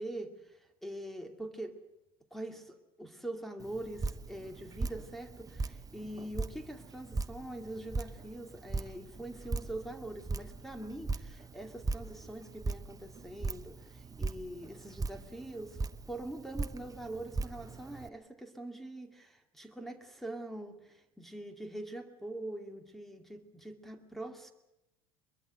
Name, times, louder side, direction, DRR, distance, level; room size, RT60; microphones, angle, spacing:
voice 1, 0.0-1.8 2.3-15.8 16.1-24.5, right 1 dB, ahead, 7 dB, 2.5 m, -43 dB
Drip, 3.6-18.1, right 3 dB, 20° right, 1.0 m, -39 dB
23.0 x 22.0 x 7.8 m, 0.88 s
hypercardioid pair, 70°, 18 cm